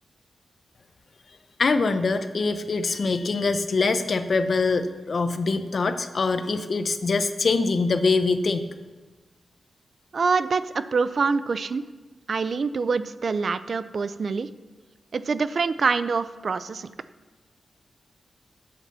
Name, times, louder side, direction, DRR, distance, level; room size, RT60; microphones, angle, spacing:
voice 1, 1.6-8.7, left 4 dB, 50° left, 9 dB, 0.9 m, -24 dB
voice 2, 10.1-11.8 12.3-14.5 15.1-16.9, right 4 dB, 55° right, 13 dB, 0.5 m, -25 dB
12.0 x 8.8 x 6.9 m, 1.3 s
wide cardioid pair, 115°, 0 cm